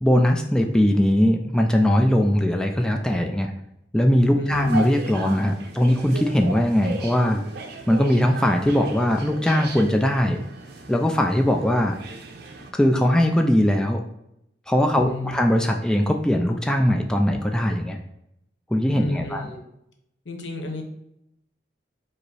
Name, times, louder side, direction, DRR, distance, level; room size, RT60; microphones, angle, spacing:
voice 1, 0.0-3.5 3.9-7.4 7.9-10.4 10.9-12.0 12.7-14.0 14.7-18.0 18.7-19.5, equal, 5° left, 2 dB, 0.3 m, -20 dB
voice 2, 4.3-4.9 14.9-15.3 18.9-19.7 20.2-20.8, left 1 dB, 75° left, 4 dB, 0.8 m, -30 dB
sound 1, 4.5-12.7, right 3 dB, 60° right, 0.6 m, -37 dB
5.0 x 2.0 x 4.7 m, 0.80 s
head